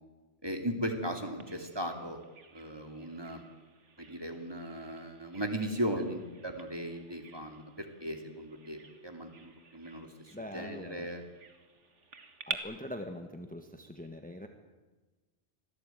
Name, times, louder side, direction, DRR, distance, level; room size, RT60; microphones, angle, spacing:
voice 1, 0.4-2.2 2.5-3.4 4.0-11.2, equal, 20° right, 5 dB, 2.9 m, -37 dB
Bird vocalization bird call bird song, 1.4-12.6, right 4 dB, 85° right, 2.1 m, -49 dB
voice 2, 10.3-11.1 12.5-14.5, left 1 dB, 5° left, 5 dB, 1.5 m, -43 dB
25.5 x 17.0 x 9.2 m, 1.2 s
omnidirectional pair, 1.2 m